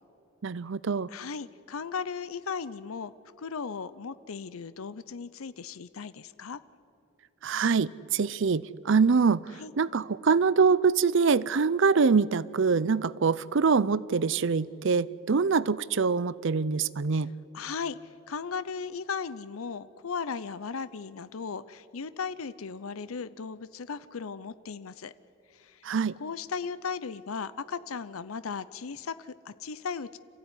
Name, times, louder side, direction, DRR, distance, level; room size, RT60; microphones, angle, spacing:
voice 1, 0.4-1.1 7.4-9.4 9.8-17.3 25.8-26.1, right 5 dB, 60° right, 20 dB, 0.6 m, -24 dB
voice 2, 1.1-3.1 3.4-6.6 9.6-9.7 17.5-25.1 25.5-25.8 26.2-30.2, left 5 dB, 85° left, 15 dB, 0.6 m, -36 dB
27.5 x 15.5 x 9.8 m, 2.8 s
head